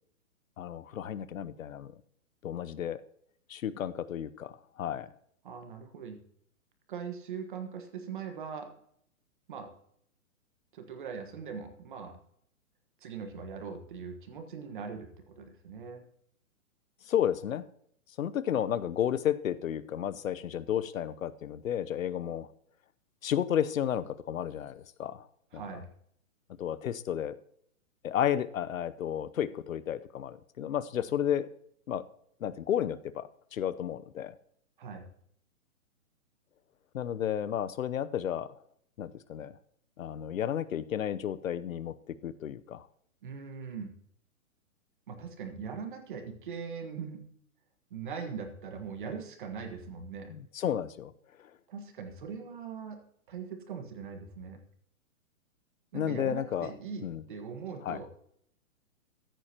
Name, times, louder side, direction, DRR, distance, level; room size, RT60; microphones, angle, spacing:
voice 1, 0.6-1.9 2.4-3.0 3.5-5.1 17.1-17.6 18.2-22.5 23.2-25.2 25.5-25.6 26.6-27.4 28.0-31.5 31.9-32.0 32.4-34.3 36.9-38.5 39.0-39.5 40.0-41.9 42.2-42.9 50.3-51.1 55.9-56.7 57.0-57.2 57.8-58.0, left 10 dB, 70° left, 15 dB, 0.8 m, -32 dB
voice 2, 5.4-6.2 6.9-8.7 9.5-9.7 10.7-12.1 13.0-16.0 25.5-25.9 34.8-35.1 43.2-43.9 45.1-47.2 47.9-50.3 51.7-53.0 53.3-54.6 55.9-58.1, right 6 dB, 35° right, 6 dB, 1.5 m, -41 dB
15.0 x 9.0 x 2.9 m, 0.67 s
hypercardioid pair, 175°, 43 cm